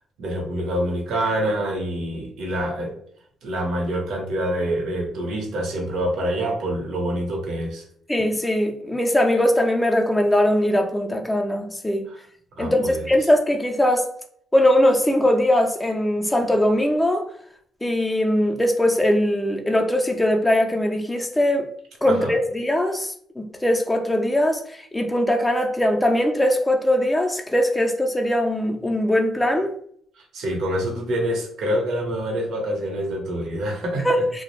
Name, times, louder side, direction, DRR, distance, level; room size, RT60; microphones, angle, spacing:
voice 1, 0.2-2.9 3.4-7.8 12.1-12.2 12.6-13.1 22.1-22.3 30.3-34.1, right 1 dB, 75° right, 0.7 m, -26 dB
voice 2, 8.1-12.1 12.6-14.1 14.5-17.3 17.8-21.7 22.0-29.7 34.0-34.4, left 1 dB, 10° left, 0.4 m, -21 dB
2.3 x 2.0 x 3.0 m
cardioid pair, 90°, 0 cm